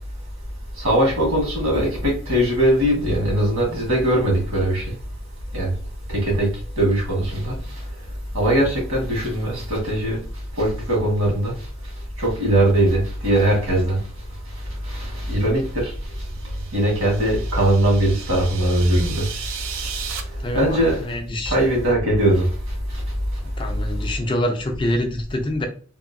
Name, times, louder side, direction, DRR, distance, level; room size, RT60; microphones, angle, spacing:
voice 1, 0.8-4.8 5.5-5.7 6.1-6.5 6.8-7.5 8.3-10.2 10.6-11.5 12.2-14.0 14.9-15.9 16.7-19.3 20.5-21.0 21.5-22.5, right 1 dB, 90° right, 1.5 m, -20 dB
sound 1, 16.0-20.2, right 7 dB, 70° right, 0.4 m, -35 dB
voice 2, 20.4-21.5 23.6-25.7, left 1 dB, 25° left, 0.4 m, -25 dB
2.9 x 2.6 x 2.5 m
head